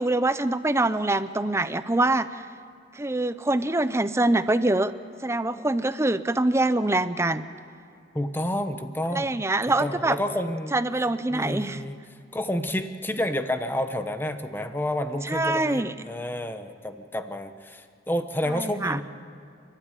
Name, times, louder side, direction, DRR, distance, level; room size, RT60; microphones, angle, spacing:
voice 1, 0.0-2.3 2.9-4.9 5.2-7.4 9.1-10.1 10.7-11.8 15.2-15.9 18.6-19.0, right 2 dB, 15° right, 13 dB, 0.6 m, -24 dB
voice 2, 8.1-9.4 9.7-10.8 11.3-12.0 12.3-19.0, left 1 dB, 10° left, 8 dB, 1.0 m, -29 dB
30.0 x 12.5 x 9.9 m, 2.5 s
head